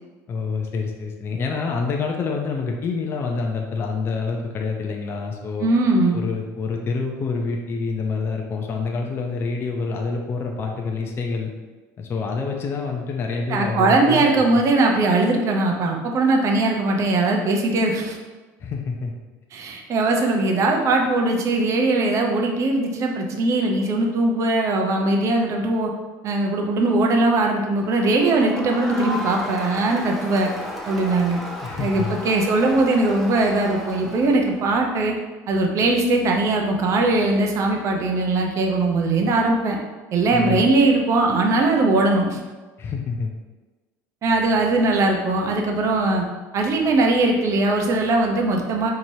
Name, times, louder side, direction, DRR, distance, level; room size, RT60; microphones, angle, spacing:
voice 1, 0.3-5.7 6.1-11.5 12.0-14.6 18.6-19.1 31.6-32.2 40.3-40.6 42.8-43.3, left 4 dB, 35° left, 1 dB, 0.5 m, -27 dB
voice 2, 5.6-6.2 13.5-18.2 19.5-25.9 26.2-30.5 30.9-31.4 31.8-35.2 35.5-39.8 40.1-42.4 44.2-46.2 46.5-48.9, right 2 dB, 45° right, 1 dB, 0.6 m, -20 dB
Crowd, 27.8-34.6, equal, ahead, 0.7 m, -34 dB
4.5 x 2.9 x 2.7 m, 1.2 s
cardioid pair, 120°, 7 cm